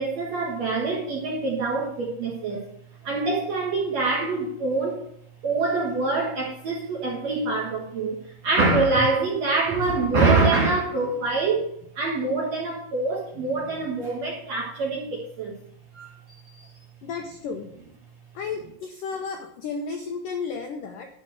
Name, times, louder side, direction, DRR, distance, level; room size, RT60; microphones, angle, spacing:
voice 1, 0.0-2.7 3.0-5.0 5.4-11.7 12.0-15.6 15.9-16.7, right 3 dB, 60° right, -3 dB, 1.9 m, -25 dB
voice 2, 13.3-13.9 17.0-17.7 18.3-21.1, left 5 dB, 90° left, 4 dB, 1.9 m, -33 dB
11.5 x 5.4 x 7.7 m, 0.72 s
omnidirectional pair, 5.2 m